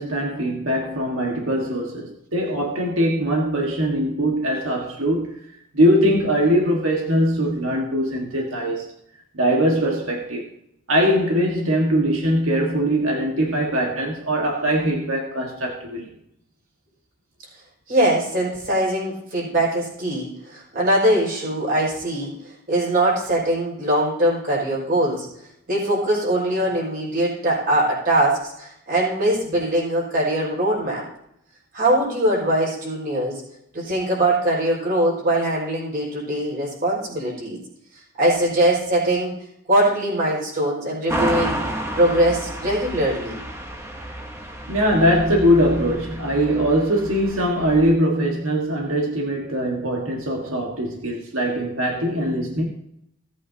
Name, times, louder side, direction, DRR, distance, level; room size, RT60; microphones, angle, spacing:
voice 1, 0.0-5.3 5.7-8.9 9.3-10.5 10.9-16.1 44.7-52.7, equal, 70° right, 1.5 m, -21 dB
voice 2, 17.9-22.3 22.7-25.3 25.7-31.0 31.7-33.4 33.7-37.6 38.2-39.3 39.7-41.6 41.9-43.4, right 1 dB, 45° right, 5.2 m, -21 dB
sound 1, 41.1-47.9, right 1 dB, 10° right, 0.9 m, -31 dB
17.5 x 8.6 x 2.8 m
head